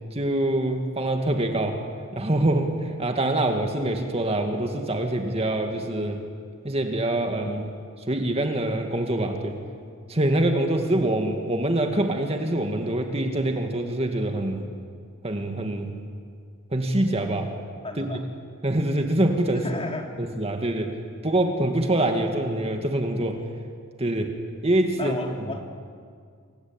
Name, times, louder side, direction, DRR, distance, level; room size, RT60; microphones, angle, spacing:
voice 1, 0.1-1.8 2.1-6.2 6.6-7.7 8.1-9.6 10.1-14.6 15.2-15.9 16.7-17.5 18.0-18.2 18.6-19.7 20.2-20.9 21.2-23.4 24.0-24.4 24.6-25.2, right 1 dB, 30° right, 4 dB, 2.2 m, -25 dB
voice 2, 17.8-18.2 19.5-20.2 25.0-25.6, left 2 dB, 25° left, 2 dB, 2.9 m, -33 dB
28.0 x 23.5 x 9.0 m, 2.1 s
head